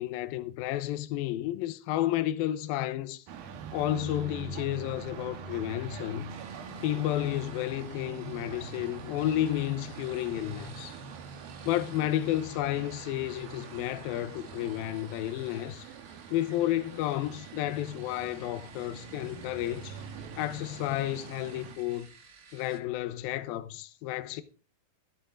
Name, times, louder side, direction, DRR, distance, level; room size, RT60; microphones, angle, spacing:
voice 1, 0.0-3.2 3.7-6.3 6.8-11.0 11.7-15.9 16.3-20.0 20.4-22.1 22.5-24.4, left 14 dB, 75° left, 2.6 m, -31 dB
sound 1, 3.3-21.8, right 6 dB, 70° right, 3.2 m, -44 dB
sound 2, 6.3-22.8, right 5 dB, 50° right, 1.0 m, -55 dB
13.5 x 11.5 x 3.7 m
omnidirectional pair, 4.4 m